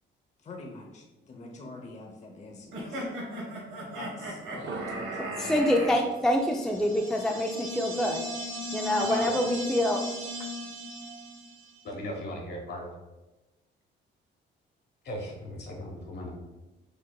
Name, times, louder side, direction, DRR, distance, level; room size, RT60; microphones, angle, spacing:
voice 1, 0.4-3.1 3.9-5.7, left 2 dB, 35° left, 0 dB, 0.6 m, -45 dB
sound 1, 2.7-6.0, right 1 dB, 80° right, 1.2 m, -37 dB
sound 2, 4.5-8.4, right 3 dB, 65° right, 0.5 m, -44 dB
voice 2, 5.4-8.2 8.7-10.0, left 1 dB, ahead, 1 dB, 0.3 m, -26 dB
sound 3, 6.4-11.8, equal, 50° right, 1.2 m, -37 dB
voice 3, 9.0-9.4 11.8-13.0 15.0-16.3, left 1 dB, 55° left, 0 dB, 1.1 m, -37 dB
5.0 x 2.7 x 2.2 m, 1.1 s
cardioid pair, 90°, 20 cm